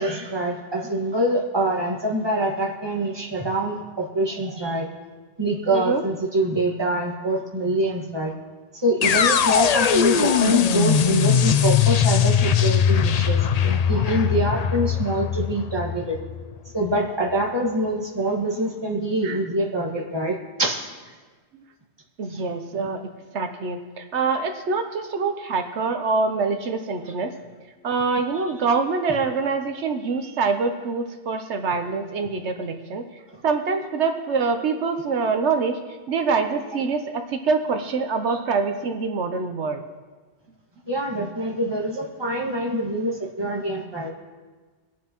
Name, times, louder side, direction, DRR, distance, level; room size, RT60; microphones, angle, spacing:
voice 1, 0.0-4.9 5.4-8.3 8.7-16.2 16.7-20.9 22.3-22.4 40.9-44.1, right 1 dB, 20° right, -2 dB, 1.7 m, -25 dB
voice 2, 5.7-6.0 19.2-19.4 22.2-23.0 23.3-27.3 27.8-33.0 33.4-35.8 36.1-39.8, right 4 dB, 80° right, 6 dB, 1.1 m, -25 dB
sound 1, 9.0-17.0, left 8 dB, 55° left, 0.4 m, -20 dB
24.0 x 9.0 x 3.0 m, 1.4 s
omnidirectional pair, 1.2 m